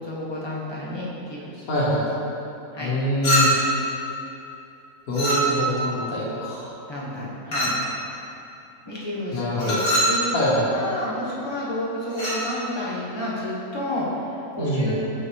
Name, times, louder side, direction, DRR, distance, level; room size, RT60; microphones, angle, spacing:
voice 1, 0.0-1.6 2.7-2.9 6.9-7.8 8.8-10.3 10.7-15.0, left 1 dB, 20° left, -7 dB, 1.1 m, -30 dB
voice 2, 1.7-2.0 2.8-3.5 5.1-6.8 9.3-9.8 10.3-10.7 14.6-14.9, equal, 80° left, -7 dB, 1.8 m, -24 dB
Chink clink, 3.2-3.8 5.1-5.8 7.5-7.9 9.6-10.2 12.1-12.5, right 1 dB, 55° left, 1.8 m, -22 dB
6.2 x 5.7 x 3.1 m, 2.8 s
omnidirectional pair, 1.5 m